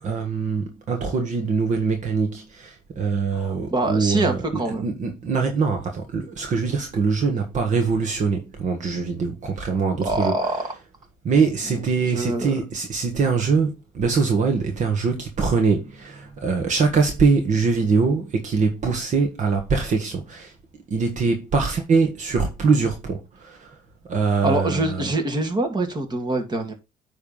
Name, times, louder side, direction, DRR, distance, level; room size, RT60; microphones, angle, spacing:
voice 1, 0.0-4.4 4.8-10.5 11.2-20.5 20.9-23.8 24.1-25.1, right 4 dB, 45° right, 1.6 m, -23 dB
voice 2, 3.3-4.9 10.0-10.6 12.0-12.5 24.4-26.7, right 2 dB, 25° right, 2.2 m, -25 dB
9.7 x 3.6 x 5.5 m
cardioid pair, 110°, 17 cm